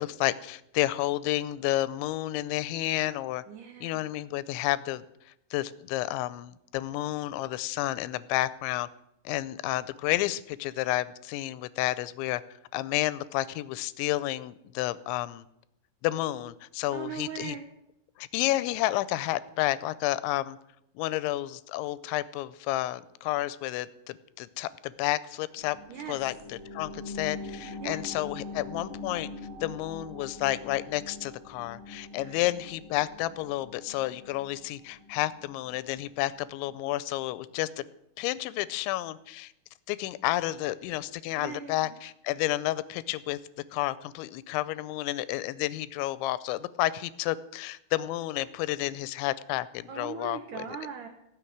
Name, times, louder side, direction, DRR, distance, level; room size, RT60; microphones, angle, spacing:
voice 1, 0.0-3.4 3.8-5.1 5.5-8.9 9.3-12.4 12.7-15.5 16.0-17.6 18.2-20.6 21.0-25.8 26.1-26.3 26.7-29.3 29.6-37.8 38.2-39.5 39.9-43.4 43.7-50.7, left 16 dB, 80° left, 16 dB, 2.9 m, -31 dB
voice 2, 3.5-4.1 16.9-17.7 25.9-26.2 27.8-28.0 32.2-32.3 41.4-41.9 49.9-51.1, right 7 dB, 80° right, 4 dB, 1.8 m, -39 dB
sound 1, 25.6-36.7 37.1-37.2, left 2 dB, 35° right, 6.3 m, -43 dB
18.0 x 6.4 x 9.3 m, 0.80 s
omnidirectional pair, 5.4 m